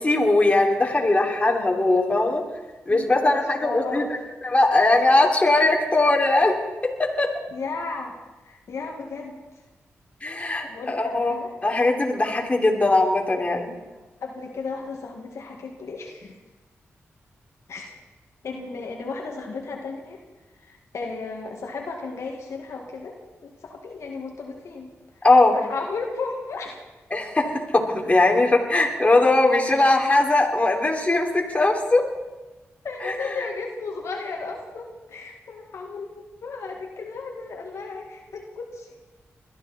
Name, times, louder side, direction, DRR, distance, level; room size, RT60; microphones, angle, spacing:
voice 1, 0.0-2.4 2.9-4.0 4.5-6.5 7.0-7.3 10.2-13.7 25.2-25.5 27.1-32.0 33.0-33.3, left 2 dB, 25° left, 0 dB, 3.4 m, -20 dB
voice 2, 2.9-4.1 7.5-8.2 8.4-9.4 10.7-11.5 14.2-16.4 17.7-17.9 18.4-20.2 20.6-24.9 25.5-26.8 32.8-39.0, left 4 dB, 70° left, 1 dB, 2.1 m, -34 dB
21.5 x 13.5 x 4.4 m, 1.1 s
cardioid pair, 60°, 5 cm